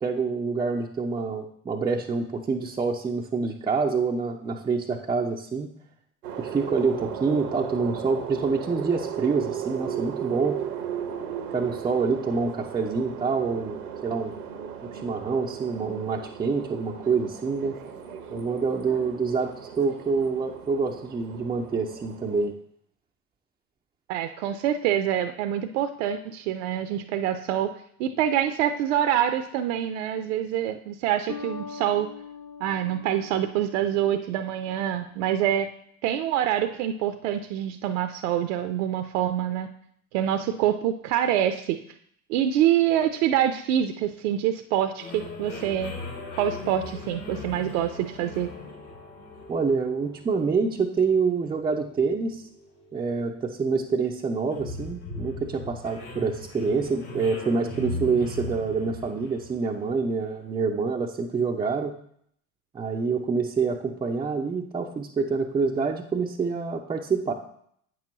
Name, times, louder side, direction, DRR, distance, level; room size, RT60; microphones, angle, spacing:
voice 1, 0.0-5.7 6.4-10.6 11.5-14.3 14.8-17.8 18.3-22.5 49.5-52.4 52.9-61.9 62.7-67.3, right 4 dB, 10° right, 0 dB, 0.3 m, -26 dB
sound 1, 6.2-22.5, right 8 dB, 85° right, 0.9 m, -36 dB
voice 2, 24.1-27.7 28.0-32.1 32.6-35.7 36.0-39.7 40.1-41.8 42.3-45.9 46.4-48.5, right 10 dB, 60° right, 8 dB, 0.6 m, -26 dB
Bass guitar, 31.3-34.8, left 6 dB, 45° left, 0.8 m, -42 dB
sound 2, 45.0-60.4, left 2 dB, 80° left, 3.1 m, -40 dB
8.5 x 6.1 x 2.9 m, 0.68 s
figure-of-eight pair, 70°, 44 cm